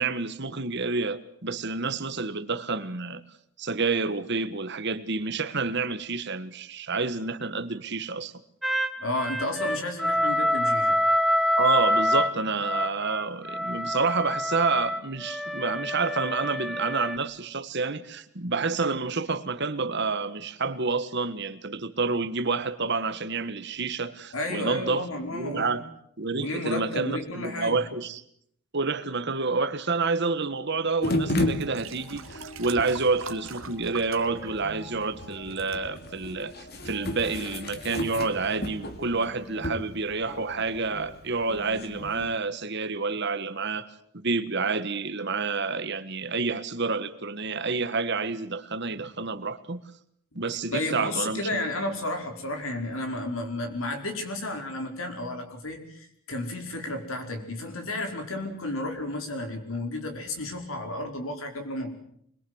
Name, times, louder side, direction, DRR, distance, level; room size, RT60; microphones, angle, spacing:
voice 1, 0.0-3.2 3.6-8.3 11.6-25.0 25.3-25.8 26.2-28.2 28.7-43.9 44.1-49.8 50.3-51.6, right 4 dB, 50° right, 1.5 m, -29 dB
sound 1, 8.6-17.2, equal, ahead, 1.0 m, -26 dB
voice 2, 9.0-11.0 24.3-25.7 26.3-27.8 50.3-50.4 50.7-61.9, left 1 dB, 65° left, 4.9 m, -32 dB
sound 2, 30.9-31.0 31.5-35.0 35.3-35.8 36.5-36.6, right 6 dB, 65° right, 1.8 m, -43 dB
sound 3, 31.0-42.4, left 1 dB, 45° left, 2.7 m, -34 dB
25.0 x 22.5 x 8.0 m
head